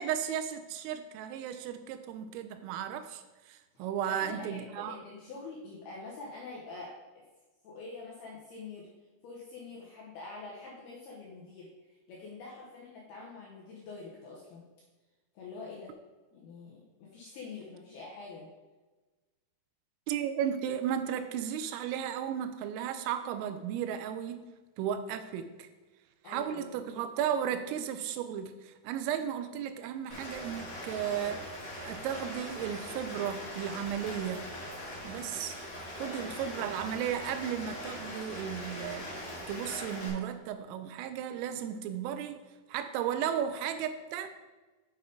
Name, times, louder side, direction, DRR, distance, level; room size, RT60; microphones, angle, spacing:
voice 1, 0.0-3.2 3.5-5.0 20.1-24.4 24.8-25.7 26.3-31.4 31.8-34.5 35.0-35.6 36.0-39.1 39.4-42.4 42.7-44.3, right 9 dB, 85° right, 10 dB, 3.2 m, -34 dB
voice 2, 4.1-7.3 7.6-8.9 9.2-14.7 15.3-16.0 16.3-18.5 26.2-26.8 36.0-36.6, left 3 dB, 75° left, -4 dB, 2.3 m, -46 dB
Rain, 30.1-40.1, equal, 40° left, 1.8 m, -41 dB
7.7 x 7.0 x 3.8 m, 1.2 s
omnidirectional pair, 5.8 m